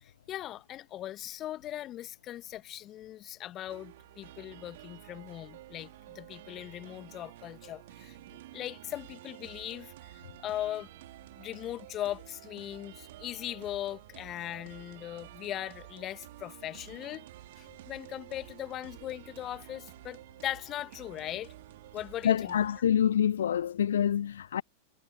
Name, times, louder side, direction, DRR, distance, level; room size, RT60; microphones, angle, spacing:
voice 1, 0.0-8.2 8.5-10.9 11.4-17.3 17.6-21.5 21.9-22.6, left 13 dB, 30° left, 1.9 m, -39 dB
sound 1, 3.7-22.8, right 16 dB, 55° right, 3.2 m, -51 dB
voice 2, 22.2-24.6, left 9 dB, 65° left, 0.8 m, -26 dB
figure-of-eight pair, 90°, 0 cm